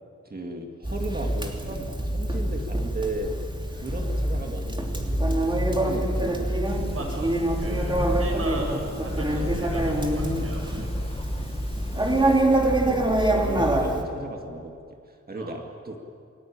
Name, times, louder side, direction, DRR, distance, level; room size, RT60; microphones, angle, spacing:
voice 1, 0.2-3.3 3.7-6.5 9.5-9.6 10.7-10.9 11.9-14.7 15.1-16.0, right 2 dB, 30° right, 2 dB, 2.2 m, -36 dB
Conversation, 0.8-14.0, right 1 dB, 15° right, 2.7 m, -25 dB
sound 1, 6.6-12.4, left 2 dB, 20° left, 1.4 m, -36 dB
voice 2, 6.9-7.3 7.6-10.7 11.0-11.1 15.4-15.6, right 2 dB, 50° right, 0 dB, 7.4 m, -37 dB
28.5 x 20.0 x 8.9 m, 2.4 s
wide cardioid pair, 145°, 29 cm